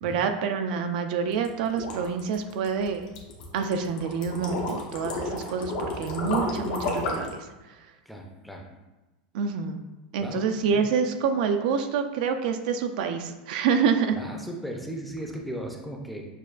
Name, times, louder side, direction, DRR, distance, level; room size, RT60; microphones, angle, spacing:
voice 1, 0.0-3.1 3.5-7.8 9.3-9.8 10.1-14.2, right 6 dB, 70° right, 6 dB, 0.4 m, -27 dB
sound 1, 1.3-7.4, left 2 dB, 70° left, 0.8 m, -32 dB
voice 2, 8.1-8.7 10.2-10.4 14.1-16.3, right 1 dB, ahead, 0 dB, 0.5 m, -36 dB
6.4 x 2.2 x 2.4 m, 1.1 s
supercardioid pair, 130°, 5 cm